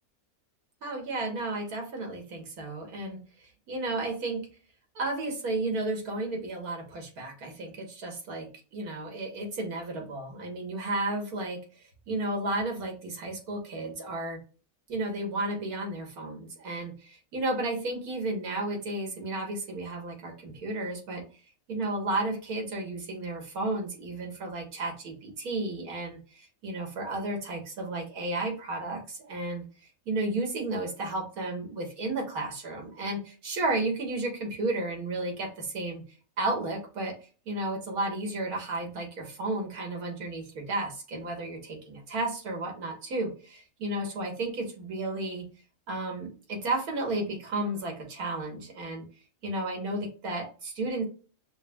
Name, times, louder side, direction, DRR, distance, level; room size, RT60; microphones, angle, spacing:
voice 1, 0.8-3.2 3.7-4.5 5.0-14.4 14.9-21.2 21.7-36.0 36.4-45.5 45.9-49.1 49.4-51.0, right 2 dB, 85° right, 1 dB, 1.7 m, -33 dB
6.2 x 2.1 x 2.2 m, 0.36 s
omnidirectional pair, 1.5 m